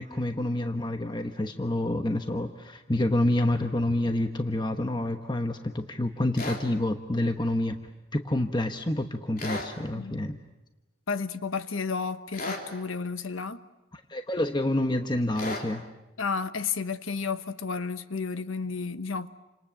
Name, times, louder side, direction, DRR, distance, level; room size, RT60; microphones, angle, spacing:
voice 1, 0.0-7.8 8.1-10.4 13.9-15.8, left 1 dB, 20° left, 1.0 m, -28 dB
sound 1, 6.3-6.6 9.4-9.7 12.3-12.7 15.4-15.7, left 2 dB, 45° left, 3.6 m, -34 dB
voice 2, 11.1-13.6 16.2-19.3, left 5 dB, 85° left, 1.1 m, -32 dB
29.5 x 26.5 x 7.6 m
head